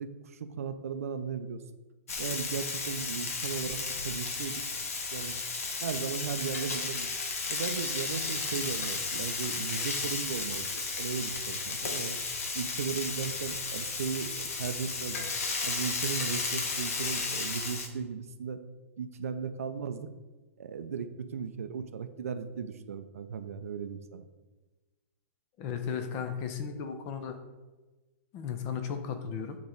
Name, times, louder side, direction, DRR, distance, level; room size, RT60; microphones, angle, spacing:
voice 1, 0.0-1.6 2.2-4.6 5.1-5.4 5.8-7.1 7.5-12.2 12.5-15.2 15.6-18.6 19.0-20.1 20.6-24.2, right 6 dB, 85° right, 9 dB, 0.5 m, -36 dB
Frying (food), 2.1-17.9, left 4 dB, 85° left, 1.0 m, -34 dB
voice 2, 25.6-27.4 28.3-29.6, left 7 dB, 35° left, 7 dB, 0.7 m, -35 dB
8.5 x 3.1 x 3.9 m, 1.2 s
hypercardioid pair, 140°, 8 cm